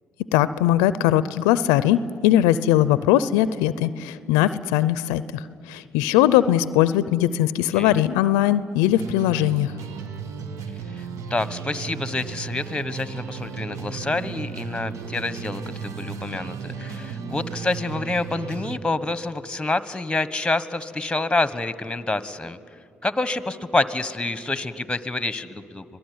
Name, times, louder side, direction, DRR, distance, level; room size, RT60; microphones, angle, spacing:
voice 1, 0.3-5.4 5.7-9.7, left 12 dB, 90° left, 16 dB, 0.5 m, -20 dB
sound 1, 8.9-18.8, right 6 dB, 70° right, 1.3 m, -35 dB
voice 2, 11.3-22.6 23.0-25.8, left 2 dB, 15° left, 14 dB, 1.3 m, -27 dB
25.5 x 18.0 x 9.5 m, 2.2 s
supercardioid pair, 60°, 6 cm